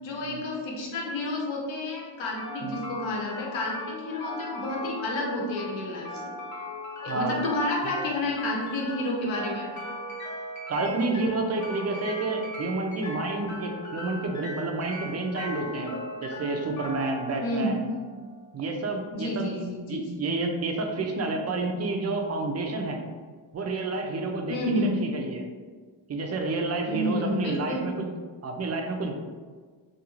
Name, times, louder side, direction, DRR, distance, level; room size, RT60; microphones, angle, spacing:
voice 1, 0.0-6.3 7.0-9.7 17.4-17.7 19.1-20.2 24.5-25.1 26.9-27.8, left 1 dB, 70° left, -1 dB, 0.8 m, -30 dB
sound 1, 2.4-18.4, left 1 dB, 35° left, 0.7 m, -38 dB
voice 2, 7.1-7.4 10.7-17.8 18.5-19.5 19.9-23.0 23.5-25.4 26.1-28.1 28.4-29.2, right 3 dB, 35° right, 3 dB, 0.4 m, -29 dB
2.4 x 2.3 x 2.9 m, 1.5 s
cardioid pair, 90°, 49 cm